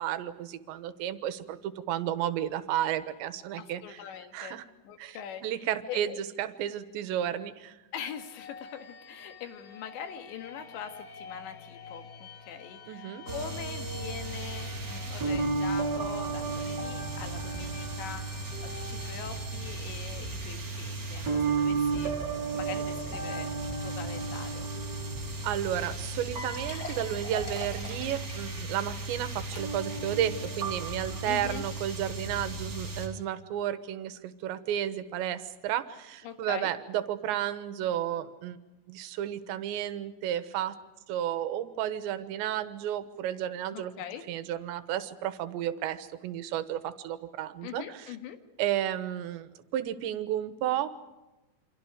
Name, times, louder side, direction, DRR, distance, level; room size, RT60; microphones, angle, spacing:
voice 1, 0.0-4.0 4.3-4.7 5.0-7.8 12.9-13.3 25.4-38.6 38.9-40.7 41.1-43.9 44.3-48.2 48.6-51.0, right 11 dB, 85° right, 12 dB, 3.4 m, -32 dB
voice 2, 3.6-6.2 7.9-18.5 18.9-22.1 22.5-24.7 31.3-31.6 36.2-36.7 43.7-44.2 47.6-48.4, left 8 dB, 80° left, 7 dB, 4.0 m, -42 dB
sound 1, 8.0-23.7, left 6 dB, 60° left, 3.4 m, -50 dB
sound 2, 13.3-33.1, right 3 dB, 25° right, 3.6 m, -34 dB
sound 3, 25.9-26.0 26.4-30.0 30.4-30.5 31.1-31.2, left 2 dB, 30° left, 2.4 m, -44 dB
28.5 x 25.5 x 5.0 m, 1.1 s
omnidirectional pair, 5.1 m